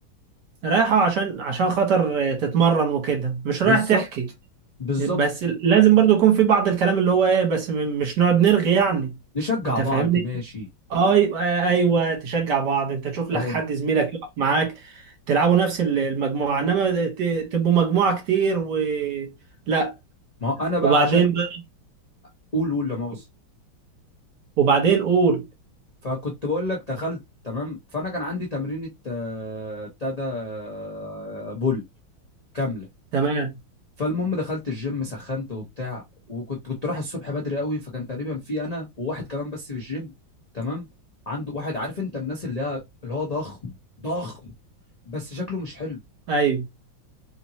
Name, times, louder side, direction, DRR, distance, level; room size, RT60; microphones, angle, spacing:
voice 1, 0.6-4.0 5.0-9.1 9.8-10.2 10.9-15.0 15.3-19.3 19.7-19.9 20.8-21.5 24.6-25.4 33.1-33.5 46.3-46.6, right 6 dB, 60° right, 1.6 m, -21 dB
voice 2, 3.6-4.0 4.8-5.2 9.3-10.7 13.3-13.6 20.4-21.2 22.5-23.2 26.0-31.8 32.5-32.9 34.0-36.0 36.3-40.1 40.5-40.9 41.3-44.5 45.1-46.0, left 2 dB, 80° left, 0.3 m, -29 dB
3.5 x 2.8 x 2.7 m
omnidirectional pair, 2.3 m